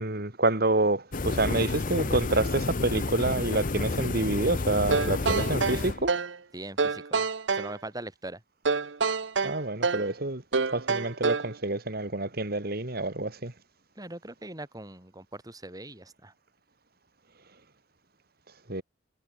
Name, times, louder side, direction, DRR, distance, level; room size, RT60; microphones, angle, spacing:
voice 1, 0.0-6.1 9.4-10.4 10.7-13.5 18.7-18.8, right 2 dB, 55° right, 3.4 m, -28 dB
sound 1, 1.1-6.1, left 3 dB, 45° left, 0.8 m, -30 dB
sound 2, 4.9-6.4 6.8-7.7 8.7-10.1 10.5-11.5, right 4 dB, 80° right, 1.0 m, -27 dB
voice 2, 6.5-7.2 7.5-8.4 14.0-16.3, right 1 dB, 20° right, 4.4 m, -41 dB
head